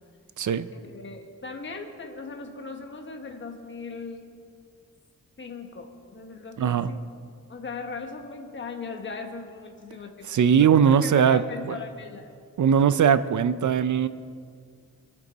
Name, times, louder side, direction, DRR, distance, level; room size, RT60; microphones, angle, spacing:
voice 1, 0.4-0.7 6.6-6.9 10.3-11.4 11.7-11.8 12.6-14.1, right 7 dB, 65° right, 14 dB, 0.5 m, -20 dB
voice 2, 0.9-4.2 5.4-7.0 7.5-12.3, left 4 dB, 35° left, 4 dB, 1.1 m, -38 dB
23.0 x 8.3 x 4.1 m, 2.1 s
wide cardioid pair, 155°, 32 cm